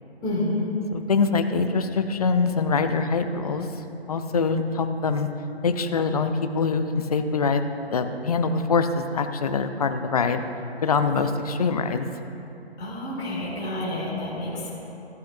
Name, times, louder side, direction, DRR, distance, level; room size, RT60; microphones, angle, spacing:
voice 1, 0.2-0.7 12.8-14.7, left 1 dB, 15° left, -6 dB, 2.6 m, -29 dB
voice 2, 0.9-3.8 4.1-5.3 5.6-10.4 10.8-12.1, left 4 dB, 35° left, 8 dB, 0.7 m, -24 dB
14.5 x 13.5 x 2.7 m, 2.9 s
figure-of-eight pair, 140°, 32 cm